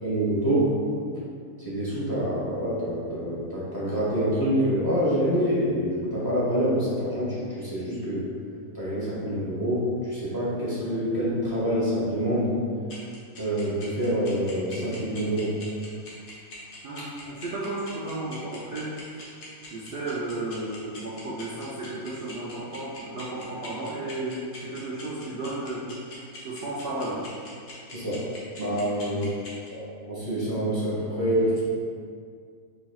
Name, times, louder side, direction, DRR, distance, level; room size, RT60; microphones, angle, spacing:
voice 1, 0.0-0.7 1.6-8.3 8.7-12.5 13.4-15.5 27.9-28.2 28.6-29.3 29.7-31.6, equal, 15° left, -10 dB, 0.9 m, -26 dB
sound 1, 12.9-29.7, left 2 dB, 70° left, 1.2 m, -43 dB
voice 2, 16.8-19.2 19.7-26.1 26.4-27.3 29.0-29.4, right 2 dB, 85° right, -7 dB, 0.5 m, -34 dB
4.1 x 3.4 x 2.3 m, 2.2 s
omnidirectional pair, 1.6 m